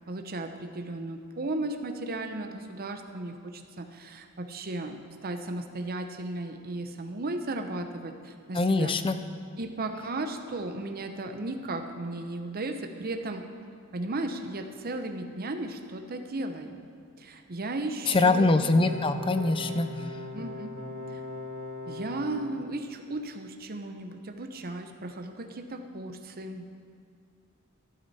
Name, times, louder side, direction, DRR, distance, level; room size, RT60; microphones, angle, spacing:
voice 1, 0.1-8.9 9.6-13.4 13.9-16.8 17.2-18.5 19.4-19.8 20.3-20.7 21.1-21.2 21.9-26.6, right 2 dB, 45° right, 6 dB, 0.8 m, -35 dB
voice 2, 8.5-9.1 18.1-19.9, left 3 dB, 25° left, 10 dB, 0.5 m, -23 dB
sound 1, 18.6-22.5, left 2 dB, 75° right, 2.6 m, -39 dB
12.5 x 11.5 x 4.2 m, 2.3 s
head